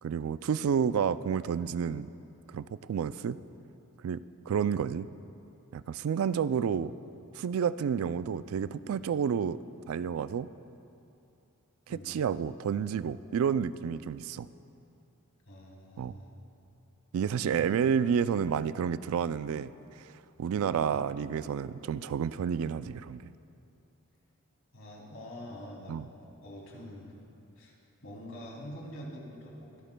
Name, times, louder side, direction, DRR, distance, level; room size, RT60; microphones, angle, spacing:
voice 1, 0.0-2.1 2.5-3.4 4.0-4.2 4.5-5.1 5.7-6.9 7.3-9.6 9.9-10.5 11.9-14.5 16.0-16.1 17.1-19.7 20.1-23.3 25.9-26.1, right 7 dB, 70° right, 15 dB, 0.3 m, -30 dB
voice 2, 15.5-16.3 17.3-17.8 20.5-20.9 24.7-26.0 26.4-27.1 27.6-27.7 28.0-29.7, equal, 70° left, -2 dB, 2.8 m, -45 dB
23.0 x 13.0 x 2.2 m, 2.7 s
head